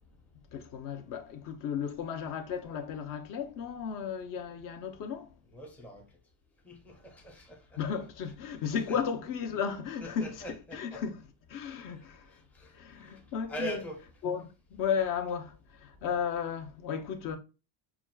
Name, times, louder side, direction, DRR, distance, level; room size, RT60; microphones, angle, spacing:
voice 1, 0.5-5.3 7.8-11.2 11.5-12.3 12.7-13.8 14.2-17.4, left 7 dB, 50° left, 0.6 m, -34 dB
voice 2, 5.5-6.1 6.6-7.8 8.9-9.0 10.0-11.0 12.5-12.7 13.0-13.2 13.5-14.0, right 1 dB, 5° left, 0.5 m, -42 dB
5.8 x 2.4 x 2.2 m
cardioid pair, 150°, 42 cm